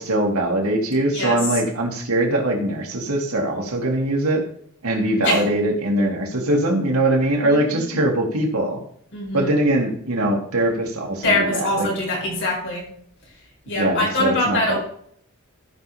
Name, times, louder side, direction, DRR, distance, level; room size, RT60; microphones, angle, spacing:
voice 1, 0.0-4.4 4.8-8.8 9.3-11.9 13.8-14.8, right 1 dB, 85° right, 0 dB, 2.6 m, -21 dB
voice 2, 7.4-8.0 9.1-9.5 11.2-12.9 13.6-14.8, left 2 dB, 60° left, -3 dB, 4.8 m, -23 dB
15.5 x 5.6 x 3.5 m, 0.64 s
head